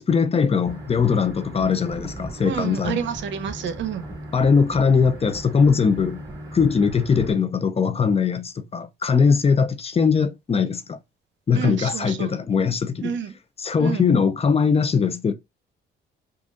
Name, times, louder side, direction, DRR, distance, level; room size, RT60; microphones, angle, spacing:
voice 1, 0.0-3.0 4.3-6.2 6.5-11.0 11.5-13.1 13.6-15.3, left 5 dB, 30° left, 0.5 m, -20 dB
sound 1, 0.6-7.3, right 1 dB, 20° right, 2.3 m, -37 dB
voice 2, 2.4-4.1 11.5-12.3 13.0-13.3 13.8-14.0, right 8 dB, 70° right, 0.7 m, -29 dB
5.1 x 2.3 x 2.5 m
cardioid pair, 90°, 20 cm